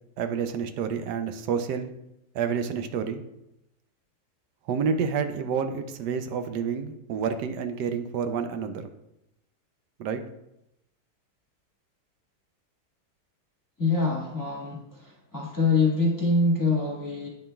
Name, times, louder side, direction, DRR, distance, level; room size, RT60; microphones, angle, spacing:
voice 1, 0.2-1.9 2.3-3.2 4.7-8.9 10.0-10.2, right 6 dB, 85° right, 8 dB, 1.2 m, -29 dB
voice 2, 13.8-17.3, left 3 dB, 10° left, -4 dB, 1.4 m, -25 dB
9.3 x 5.2 x 2.3 m, 0.84 s
omnidirectional pair, 1.8 m